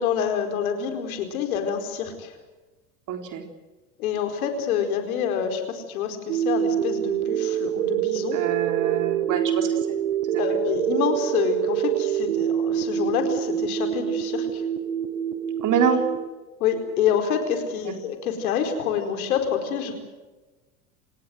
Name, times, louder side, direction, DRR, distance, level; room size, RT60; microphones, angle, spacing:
voice 1, 0.0-2.3 4.0-8.4 10.4-14.6 16.6-19.9, left 8 dB, 75° left, 6 dB, 4.7 m, -27 dB
voice 2, 3.1-3.4 8.3-9.8 10.3-10.6 15.6-16.0 17.9-18.0, right 7 dB, 45° right, 5 dB, 4.1 m, -25 dB
sound 1, 6.3-16.3, right 10 dB, 75° right, 1.5 m, -26 dB
27.5 x 19.0 x 7.9 m, 1.2 s
hypercardioid pair, 85°, 43 cm